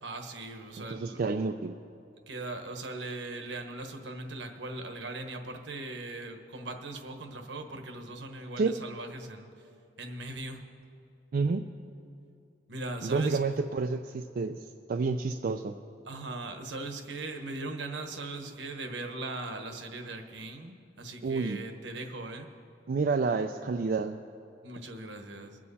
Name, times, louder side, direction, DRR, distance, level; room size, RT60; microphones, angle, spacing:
voice 1, 0.0-1.2 2.3-9.7 10.0-10.6 12.7-13.4 16.0-22.5 24.6-25.6, right 2 dB, 75° right, 5 dB, 1.2 m, -39 dB
voice 2, 0.8-1.8 8.6-8.7 11.3-11.6 13.0-14.6 14.9-15.7 21.2-21.6 22.9-24.2, right 4 dB, 50° right, 6 dB, 0.4 m, -29 dB
22.5 x 7.6 x 4.2 m, 2.6 s
head